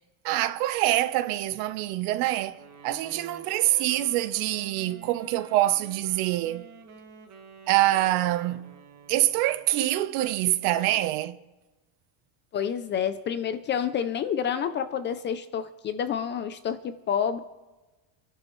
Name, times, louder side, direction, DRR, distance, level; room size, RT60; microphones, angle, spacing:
voice 1, 0.2-2.6 2.8-6.7 7.7-8.7 9.1-11.4, right 15 dB, 80° right, 1.0 m, -25 dB
Wind instrument woodwind instrument, 2.5-9.8, right 6 dB, 35° right, 1.9 m, -49 dB
voice 2, 12.5-17.4, left 8 dB, 25° left, 0.3 m, -29 dB
27.0 x 11.5 x 3.1 m
cardioid pair, 165°, 46 cm